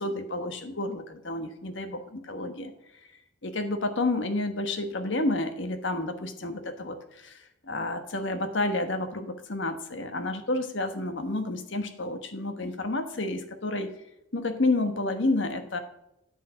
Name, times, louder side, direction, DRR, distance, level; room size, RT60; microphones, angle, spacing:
voice 1, 0.0-2.7 3.4-7.4 7.6-13.9 14.3-15.8, left 2 dB, 70° left, 8 dB, 1.3 m, -30 dB
10.0 x 5.6 x 5.8 m, 0.85 s
head